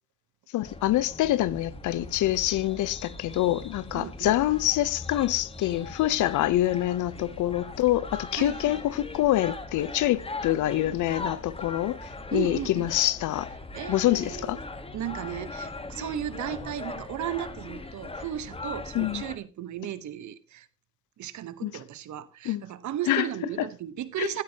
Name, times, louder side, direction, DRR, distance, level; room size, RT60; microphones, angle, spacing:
voice 1, 0.5-13.5 13.9-14.6 18.9-19.2 21.6-21.7 22.4-22.6 23.1-23.3 23.6-23.7 24.2-24.3, left 14 dB, 80° left, 0.7 m, -26 dB
sound 1, 0.6-19.4, left 3 dB, 20° left, 1.3 m, -40 dB
voice 2, 3.9-4.6 8.3-8.8 12.3-12.9 13.7-14.6 14.9-20.7 21.2-24.4, right 11 dB, 70° right, 1.1 m, -35 dB
13.5 x 9.3 x 2.9 m
cardioid pair, 90°, 30 cm